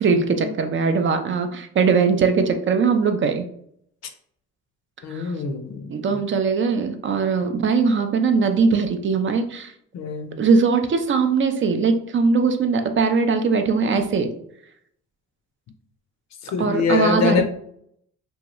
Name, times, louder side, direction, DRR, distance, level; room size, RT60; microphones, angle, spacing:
voice 1, 0.0-3.4 5.1-5.3 5.9-9.7 10.4-14.3 16.6-17.4, right 5 dB, 40° right, 7 dB, 0.4 m, -20 dB
voice 2, 5.0-5.9 9.9-10.4 16.4-17.4, left 5 dB, 60° left, 6 dB, 0.6 m, -24 dB
2.7 x 2.3 x 3.0 m, 0.68 s
cardioid pair, 90°, 30 cm